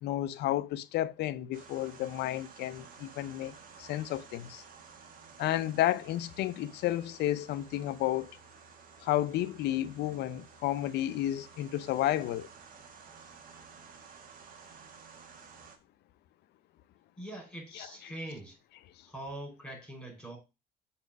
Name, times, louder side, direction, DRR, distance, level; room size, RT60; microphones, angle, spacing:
voice 1, 0.0-4.6 5.4-8.3 9.0-12.5 17.7-17.9, left 13 dB, 80° left, 0.6 m, -32 dB
sound 1, 1.5-15.8, right 6 dB, 55° right, 1.6 m, -53 dB
voice 2, 17.2-18.6 19.0-20.4, right 1 dB, 5° left, 5.4 m, -43 dB
7.1 x 4.4 x 5.2 m
cardioid pair, 110°, 17 cm